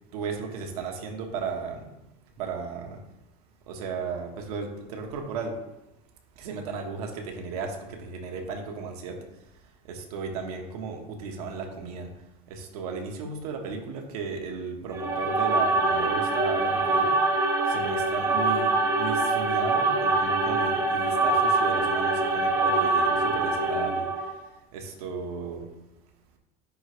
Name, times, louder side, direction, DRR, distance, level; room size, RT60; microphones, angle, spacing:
voice 1, 0.1-1.9 2.4-3.0 3.7-5.8 6.4-9.3 9.8-17.3 17.6-24.4 24.7-25.7, right 5 dB, 85° right, 2 dB, 1.3 m, -35 dB
sound 1, 14.9-24.4, right 3 dB, 15° right, 0.8 m, -24 dB
10.0 x 3.4 x 3.1 m, 0.90 s
supercardioid pair, 135°, 19 cm